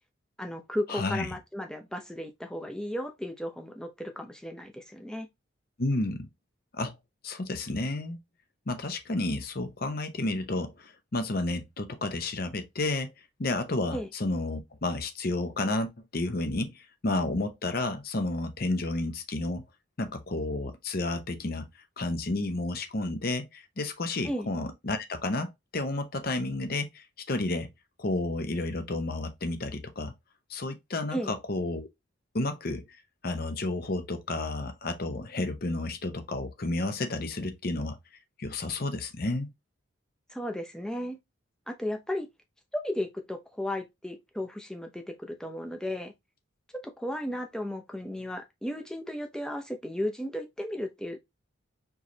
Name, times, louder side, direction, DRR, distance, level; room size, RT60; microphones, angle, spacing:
voice 1, 0.4-5.3 13.9-14.1 24.2-24.5 31.1-31.3 40.3-41.2 41.7-42.3 42.8-46.1 46.8-51.2, left 1 dB, 5° left, 0.6 m, -35 dB
voice 2, 0.9-1.3 5.8-6.3 6.7-6.9 7.2-8.2 8.7-13.1 13.4-19.6 20.0-21.7 22.0-27.7 28.0-30.1 30.5-31.9 32.3-32.8 33.2-38.0 38.4-39.5, left 2 dB, 45° left, 0.7 m, -31 dB
4.5 x 3.2 x 2.7 m
head